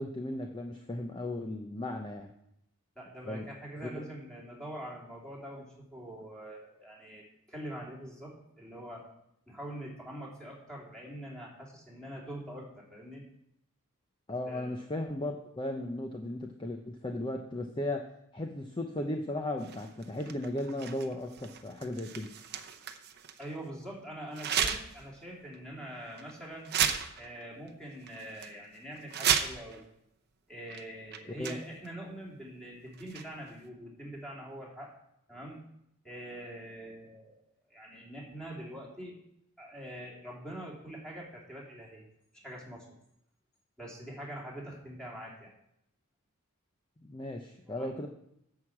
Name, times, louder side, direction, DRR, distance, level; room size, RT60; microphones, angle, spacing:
voice 1, 0.0-2.3 3.2-3.5 3.8-4.0 14.3-22.3 31.4-31.6 47.0-48.1, left 1 dB, 20° left, 4 dB, 0.7 m, -36 dB
voice 2, 2.9-9.1 9.5-13.2 14.5-14.7 23.4-26.7 27.2-29.8 30.5-34.9 35.3-35.6 36.0-37.3 37.7-39.2 39.6-42.0 42.3-42.9 43.8-45.5 47.6-48.1, right 1 dB, 5° left, -4 dB, 2.9 m, -44 dB
sound 1, 19.6-23.5 24.3-25.0 25.4-25.6 26.2-26.3 26.6-27.4 27.7-27.8 28.1-28.5 29.0-29.8 30.7-30.8 31.1-31.9 32.9-33.5, right 8 dB, 50° right, 0.7 m, -34 dB
10.5 x 4.8 x 7.3 m, 0.77 s
head